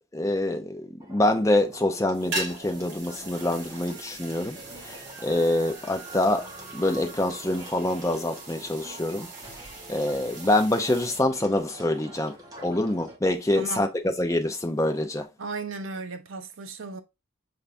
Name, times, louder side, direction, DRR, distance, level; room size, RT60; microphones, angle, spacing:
voice 1, 0.1-6.4 6.7-9.3 9.9-12.3 12.6-15.3, left 1 dB, 15° left, 0.5 m, -25 dB
sound 1, 1.0-13.2, right 1 dB, 15° right, 1.0 m, -45 dB
sound 2, 2.1-11.2, right 2 dB, 50° right, 1.7 m, -40 dB
voice 2, 13.5-13.9 15.4-17.0, right 3 dB, 70° right, 0.6 m, -35 dB
5.6 x 3.4 x 2.5 m
head